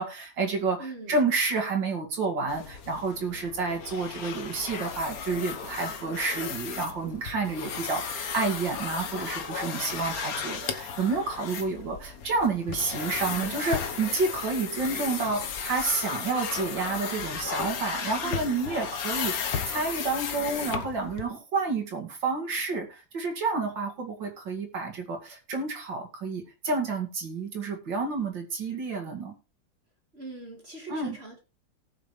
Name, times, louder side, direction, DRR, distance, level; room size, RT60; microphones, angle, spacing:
voice 1, 0.0-0.8 1.1-29.3 30.9-31.2, right 4 dB, 70° right, 2 dB, 3.0 m, -30 dB
voice 2, 0.8-1.2 18.2-18.8 30.1-31.4, right 3 dB, 35° right, 2 dB, 2.1 m, -42 dB
sound 1, 2.5-21.2, left 6 dB, 55° left, 1.5 m, -35 dB
18.5 x 6.4 x 3.2 m, 0.29 s
omnidirectional pair, 2.1 m